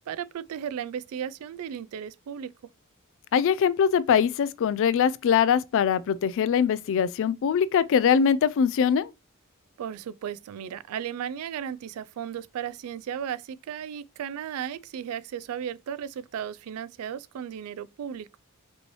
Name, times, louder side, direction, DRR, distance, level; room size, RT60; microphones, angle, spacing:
voice 1, 0.1-2.5 9.8-18.3, right 8 dB, 75° right, 0.3 m, -35 dB
voice 2, 3.3-9.1, left 7 dB, 60° left, 0.3 m, -22 dB
5.2 x 3.1 x 3.0 m
head